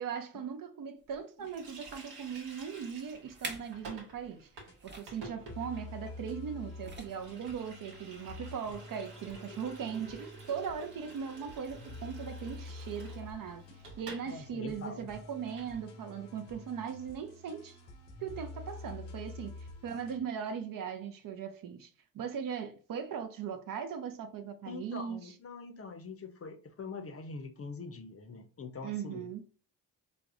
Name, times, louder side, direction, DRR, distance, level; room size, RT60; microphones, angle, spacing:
voice 1, 0.0-4.5 4.8-17.8 18.2-25.2 28.8-29.4, right 7 dB, 50° right, 0.6 m, -39 dB
sound 1, 1.0-1.2 1.8-2.2 2.9-3.0 3.3-3.8 4.1-4.3 4.8-5.2 6.3-6.5 6.8-7.4 8.0-8.1, right 2 dB, 25° right, 0.8 m, -45 dB
Water tap faucet, 1.4-14.3 14.6-14.7 15.0-15.7, right 3 dB, 70° right, 1.1 m, -51 dB
sound 2, 4.3-4.7 5.5-20.2, left 2 dB, 90° left, 0.8 m, -48 dB
voice 2, 14.3-15.1 24.7-29.5, left 4 dB, 35° left, 0.6 m, -44 dB
3.3 x 2.0 x 2.4 m
hypercardioid pair, 50°, 43 cm